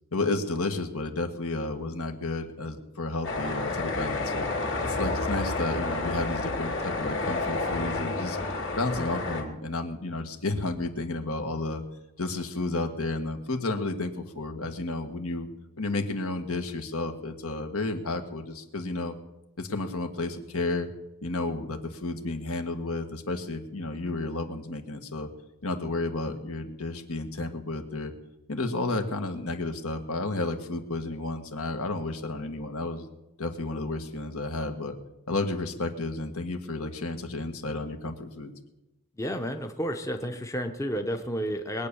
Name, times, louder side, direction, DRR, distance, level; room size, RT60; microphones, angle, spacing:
voice 1, 0.1-4.5 4.8-8.4 8.7-11.8 12.2-15.5 15.8-19.2 19.6-20.9 21.2-25.3 25.6-28.1 28.5-33.1 33.4-34.9 35.3-38.5, left 2 dB, 75° left, 5 dB, 1.8 m, -32 dB
sound 1, 3.2-9.4, left 3 dB, 55° left, 2.9 m, -30 dB
voice 2, 39.2-41.9, equal, 15° left, 5 dB, 0.7 m, -31 dB
21.5 x 8.6 x 7.0 m, 0.96 s
head